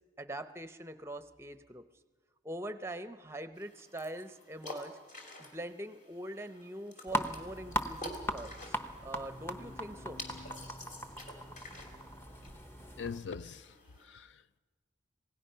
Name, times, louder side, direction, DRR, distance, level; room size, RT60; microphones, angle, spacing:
voice 1, 0.2-1.8 2.4-5.0 5.4-10.2, right 1 dB, 15° right, 0.7 m, -43 dB
sound 1, 3.5-14.1, left 1 dB, 40° left, 2.7 m, -50 dB
sound 2, 7.1-13.2, right 1 dB, 10° left, 0.9 m, -39 dB
voice 2, 13.0-14.6, left 5 dB, 70° left, 0.5 m, -43 dB
27.0 x 17.5 x 5.6 m
head